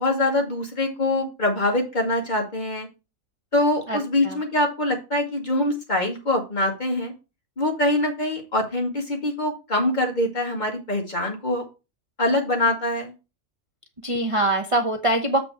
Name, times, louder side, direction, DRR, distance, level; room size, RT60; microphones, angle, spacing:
voice 1, 0.0-2.9 3.5-7.1 7.6-11.6 12.2-13.1, left 1 dB, 35° left, 1 dB, 2.1 m, -24 dB
voice 2, 3.9-4.4 14.0-15.4, right 1 dB, 30° right, 4 dB, 0.8 m, -23 dB
7.6 x 5.3 x 4.6 m, 0.29 s
omnidirectional pair, 1.4 m